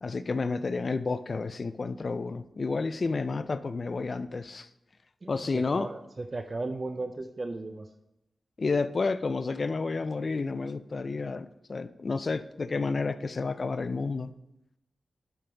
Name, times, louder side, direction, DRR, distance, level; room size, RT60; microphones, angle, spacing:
voice 1, 0.0-4.7 5.3-5.9 8.6-14.3, left 4 dB, 45° left, 13 dB, 0.4 m, -30 dB
voice 2, 5.2-7.9, right 2 dB, 35° right, 8 dB, 0.4 m, -36 dB
11.5 x 5.2 x 3.4 m, 0.89 s
wide cardioid pair, 105°, 0 cm